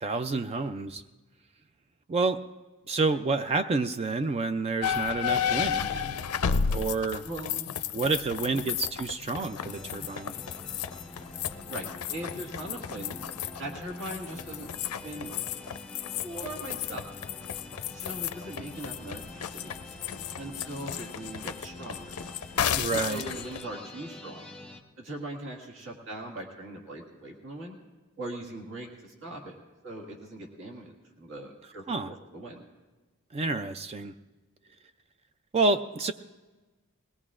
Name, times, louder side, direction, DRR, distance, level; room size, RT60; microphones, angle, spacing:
voice 1, 0.0-1.0 2.1-2.5 2.9-6.0 6.7-7.2 7.9-10.3 22.8-23.2 31.9-32.1 33.3-34.1 35.5-36.1, right 3 dB, 25° right, 10 dB, 0.3 m, -29 dB
sound 1, 4.8-23.6, left 8 dB, 85° left, 0.5 m, -33 dB
voice 2, 7.2-7.8 8.5-8.6 11.7-13.2 13.6-14.7 15.0-15.6 16.2-17.1 17.9-19.7 20.4-22.1 23.1-24.5 25.0-27.8 28.2-29.6 29.8-32.6, right 1 dB, 60° right, -1 dB, 1.8 m, -40 dB
sound 2, 9.4-24.8, left 2 dB, 5° left, 0.9 m, -46 dB
21.5 x 18.0 x 2.4 m, 1.2 s
head